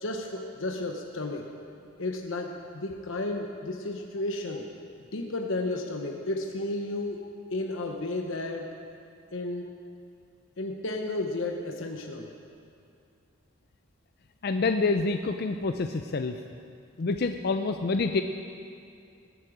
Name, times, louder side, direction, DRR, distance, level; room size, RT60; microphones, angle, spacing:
voice 1, 0.0-1.5 2.0-4.7 5.1-8.7 9.3-9.7 10.6-12.3, left 2 dB, 75° left, 3 dB, 0.9 m, -33 dB
voice 2, 14.4-16.4 17.0-18.2, left 3 dB, 50° left, 7 dB, 0.4 m, -27 dB
20.0 x 9.0 x 5.0 m, 2.5 s
head